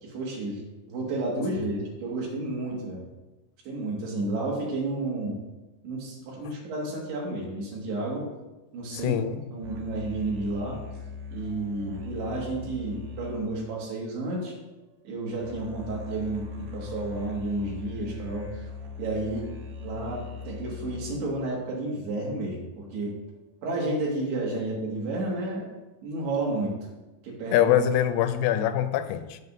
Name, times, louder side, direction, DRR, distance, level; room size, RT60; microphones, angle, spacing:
voice 1, 0.0-0.6 0.9-3.0 3.7-5.4 5.8-8.3 8.7-9.2 9.5-10.8 11.3-14.5 15.1-18.5 19.0-19.5 19.8-23.2 23.6-25.7 26.0-26.7 27.2-27.7, right 2 dB, 90° right, 4.1 m, -31 dB
voice 2, 8.9-9.4 27.5-29.4, left 10 dB, 85° left, 2.5 m, -24 dB
sound 1, 9.6-14.6 15.4-21.4, left 5 dB, 70° right, 2.8 m, -40 dB
16.5 x 6.0 x 2.7 m
omnidirectional pair, 4.5 m